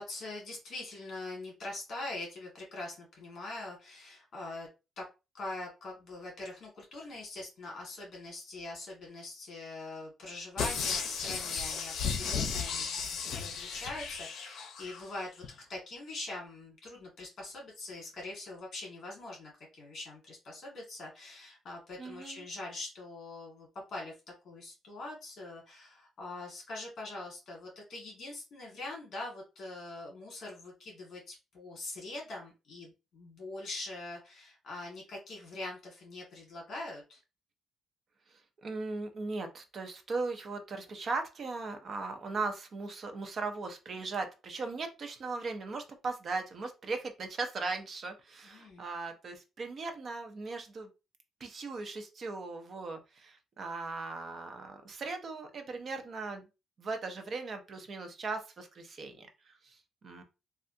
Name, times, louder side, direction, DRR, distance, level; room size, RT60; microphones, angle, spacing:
voice 1, 0.0-4.7 5.0-5.1 5.3-15.4 15.7-24.1 24.4-37.2 48.4-48.8, left 2 dB, 45° left, -1 dB, 1.6 m, -43 dB
sound 1, 10.6-15.0 15.4-15.5, left 6 dB, 65° left, 0.6 m, -34 dB
voice 2, 22.0-22.5 38.3-50.9 51.4-56.5 56.8-60.2, right 3 dB, 35° right, 5 dB, 0.6 m, -38 dB
3.3 x 2.4 x 2.7 m, 0.28 s
cardioid pair, 175°, 0 cm